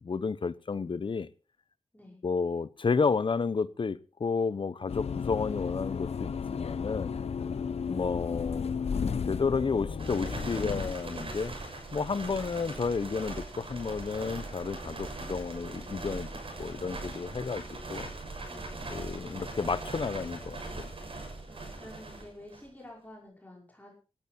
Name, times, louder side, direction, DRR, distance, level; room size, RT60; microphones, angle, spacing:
voice 1, 0.0-1.3 2.2-7.2 7.9-8.8 9.2-16.3 16.6-18.1 18.9-20.9, left 5 dB, 55° left, 0.9 m, -31 dB
voice 2, 1.9-2.2 18.5-19.4 21.5-24.0, left 1 dB, 15° left, 5.4 m, -50 dB
sound 1, 4.9-10.9, left 6 dB, 80° left, 0.9 m, -33 dB
sound 2, 10.0-22.8, right 2 dB, 60° right, 7.0 m, -40 dB
18.0 x 12.5 x 4.4 m
wide cardioid pair, 100°, 10 cm